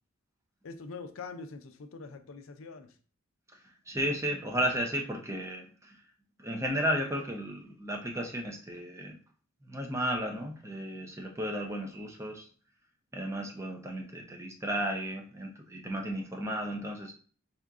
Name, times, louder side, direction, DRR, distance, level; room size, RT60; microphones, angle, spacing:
voice 1, 0.6-2.9, left 4 dB, 90° left, 8 dB, 0.5 m, -44 dB
voice 2, 3.9-6.0 6.4-9.2 9.6-12.5 13.1-17.1, equal, 15° right, 2 dB, 0.6 m, -34 dB
4.3 x 2.5 x 3.5 m, 0.41 s
head